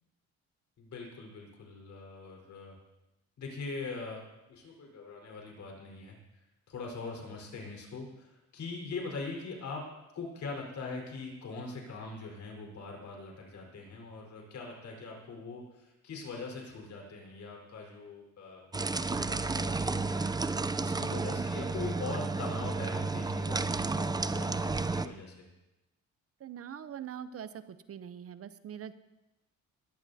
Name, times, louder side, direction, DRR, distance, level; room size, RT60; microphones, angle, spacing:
voice 1, 0.8-2.8 3.4-4.2 4.5-6.2 6.7-9.8 10.1-18.7 19.1-20.3 20.8-25.5, left 3 dB, 65° left, 0 dB, 4.5 m, -42 dB
sound 1, 18.7-25.1, right 3 dB, 15° right, 0.5 m, -32 dB
voice 2, 26.4-28.9, right 9 dB, 50° right, 13 dB, 0.7 m, -43 dB
20.0 x 14.0 x 2.8 m, 0.99 s
cardioid pair, 90°, 30 cm